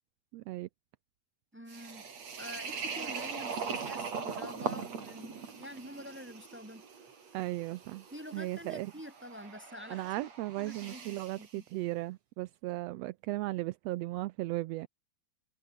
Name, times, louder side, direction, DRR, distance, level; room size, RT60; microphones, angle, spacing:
voice 1, 0.3-0.7 7.3-8.0 8.3-8.9 9.9-14.9, right 18 dB, 80° right, 1.5 m, -36 dB
voice 2, 1.5-2.0 2.4-6.8 8.1-10.3 10.6-11.6, equal, 15° right, 0.4 m, -47 dB
sound 1, 1.7-11.5, right 5 dB, 60° right, 4.8 m, -41 dB
omnidirectional pair, 3.4 m